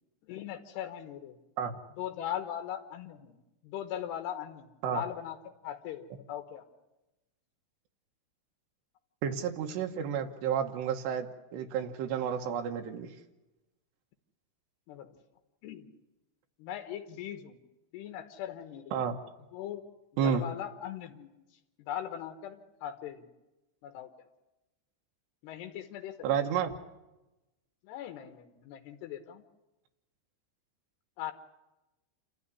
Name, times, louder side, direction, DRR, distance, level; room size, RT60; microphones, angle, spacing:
voice 1, 0.3-1.4 2.0-5.4 5.6-6.7 14.9-15.1 15.6-15.9 16.6-17.6 17.9-19.0 19.5-19.9 20.2-21.3 21.8-23.3 23.8-24.1 25.4-26.2 27.8-29.4 31.2-31.3, left 11 dB, 80° left, 6 dB, 3.3 m, -39 dB
voice 2, 9.2-13.1 18.9-19.2 20.2-20.4 26.2-26.7, right 8 dB, 85° right, 3 dB, 3.4 m, -31 dB
28.5 x 13.0 x 9.8 m, 1.0 s
omnidirectional pair, 4.8 m